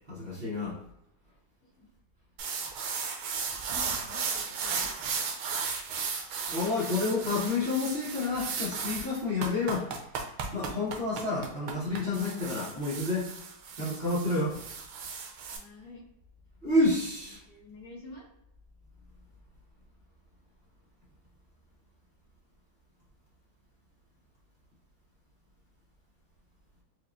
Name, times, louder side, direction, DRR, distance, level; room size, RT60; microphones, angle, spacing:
voice 1, 0.1-0.8 6.5-9.9 10.5-13.3 13.7-14.6 16.6-17.4, left 2 dB, 40° right, -7 dB, 1.0 m, -29 dB
sound 1, 2.4-15.6, right 5 dB, 85° right, 1.2 m, -35 dB
voice 2, 3.7-5.3 15.5-16.0 17.4-18.3, left 1 dB, 65° left, -3 dB, 1.3 m, -49 dB
4.6 x 2.3 x 2.5 m, 0.78 s
omnidirectional pair, 1.8 m